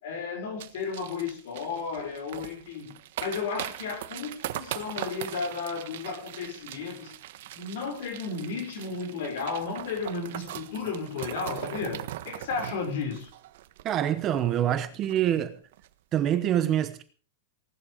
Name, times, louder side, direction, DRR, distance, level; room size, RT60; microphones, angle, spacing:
voice 1, 0.0-2.9 3.2-7.1 7.5-13.3, left 5 dB, 45° left, 5.7 m, -33 dB
sound 1, 0.6-14.4 14.7-14.8 15.0-15.4 15.7-15.9, right 13 dB, 45° right, 1.3 m, -40 dB
voice 2, 13.8-15.6 16.1-17.0, right 11 dB, 20° right, 1.0 m, -25 dB
18.5 x 12.5 x 5.1 m
supercardioid pair, 180°, 0 cm